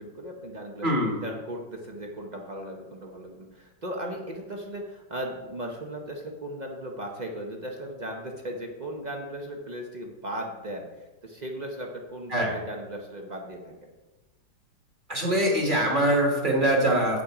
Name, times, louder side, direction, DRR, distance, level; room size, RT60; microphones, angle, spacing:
voice 1, 0.0-13.9, right 1 dB, 45° right, 1 dB, 0.5 m, -37 dB
voice 2, 0.8-1.1 12.3-12.5 15.1-17.2, right 1 dB, 30° right, 0 dB, 1.5 m, -23 dB
8.3 x 6.2 x 4.9 m, 1.1 s
omnidirectional pair, 2.0 m